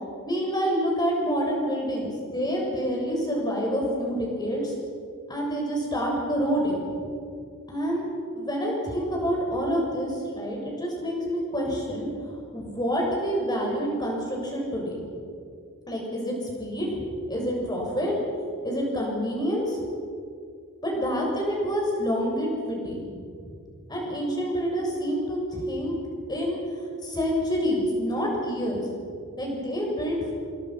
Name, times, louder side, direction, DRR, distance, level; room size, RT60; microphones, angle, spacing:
voice 1, 0.2-4.7 5.3-6.8 7.7-8.1 8.3-12.1 12.5-15.0 15.9-18.1 18.6-19.8 20.8-23.5 23.9-25.9 26.3-26.6 27.0-28.9 29.4-30.2, equal, 20° left, -1 dB, 7.1 m, -27 dB
28.5 x 26.5 x 6.1 m, 2.3 s
head